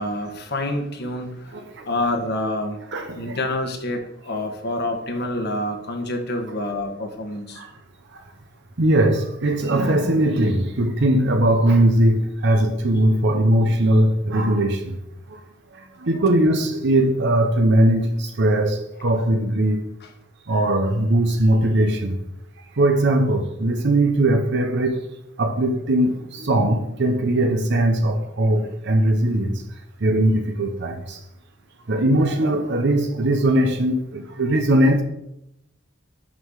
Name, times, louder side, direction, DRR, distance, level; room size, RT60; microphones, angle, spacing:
voice 1, 0.0-1.6 1.8-2.8 3.1-7.6 12.5-12.6 20.0-20.1, left 1 dB, 55° left, 1.4 m, -27 dB
voice 2, 1.5-1.9 2.9-3.4 7.6-7.7 8.1-8.2 8.8-15.0 15.3-15.4 15.7-19.8 20.5-22.2 22.7-25.0 25.4-29.6 30.0-31.2 31.9-35.0, right 1 dB, 60° right, 0.8 m, -20 dB
6.2 x 5.6 x 6.5 m
head